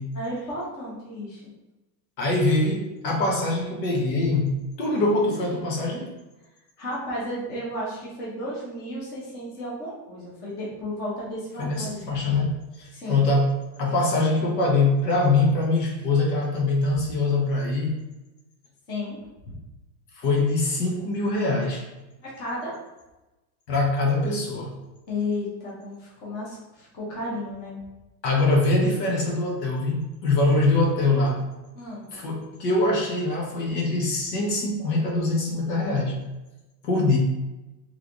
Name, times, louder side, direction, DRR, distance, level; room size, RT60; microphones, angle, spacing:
voice 1, 0.1-1.5 6.8-12.1 12.9-13.2 18.9-19.2 19.4-19.5 22.2-22.8 25.1-27.8 31.7-32.1, left 1 dB, 20° left, -6 dB, 0.8 m, -33 dB
voice 2, 2.2-6.1 11.6-18.0 20.2-21.9 23.7-24.7 28.2-31.5 32.1-36.2 36.8-37.2, left 2 dB, 75° left, -1 dB, 1.4 m, -23 dB
3.4 x 3.3 x 3.9 m, 1.0 s
supercardioid pair, 180°, 50 cm